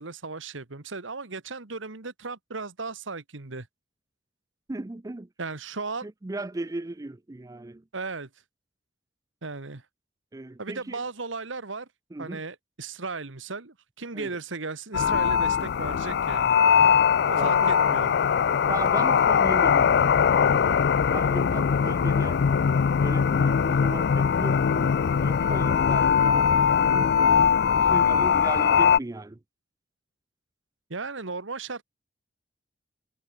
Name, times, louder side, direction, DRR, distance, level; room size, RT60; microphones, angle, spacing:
voice 1, 0.0-3.7 5.4-6.1 7.9-8.3 9.4-9.8 10.6-11.9 12.2-16.6 17.3-18.1 30.9-31.8, right 4 dB, 85° right, 1.7 m, -36 dB
voice 2, 4.7-5.3 6.0-7.8 10.3-11.0 12.1-12.4 14.1-14.4 17.4-17.8 18.7-20.8 21.1-22.4 23.0-24.9 25.2-27.1 27.7-29.4, right 2 dB, 20° right, 0.4 m, -36 dB
sound 1, 14.9-29.0, left 7 dB, 60° left, 0.4 m, -21 dB
head